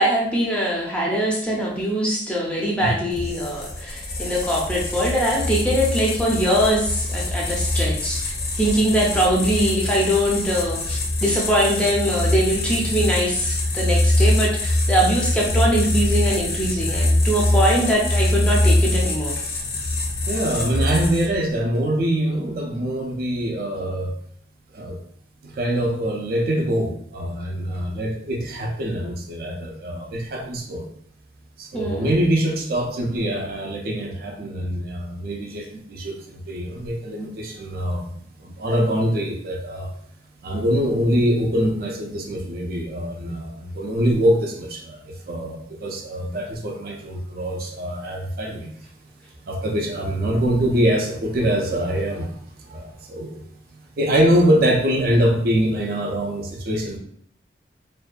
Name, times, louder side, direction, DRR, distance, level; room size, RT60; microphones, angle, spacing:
voice 1, 0.0-19.3 31.7-32.1, equal, 5° left, -3 dB, 0.4 m, -22 dB
sound 1, 3.1-21.5, left 1 dB, 60° left, 0.5 m, -23 dB
voice 2, 20.3-24.1 24.7-25.0 25.4-30.8 31.6-38.1 38.4-39.9 40.4-48.7 49.4-53.4 54.0-57.0, equal, 55° right, 2 dB, 0.4 m, -24 dB
2.5 x 2.2 x 2.3 m, 0.65 s
head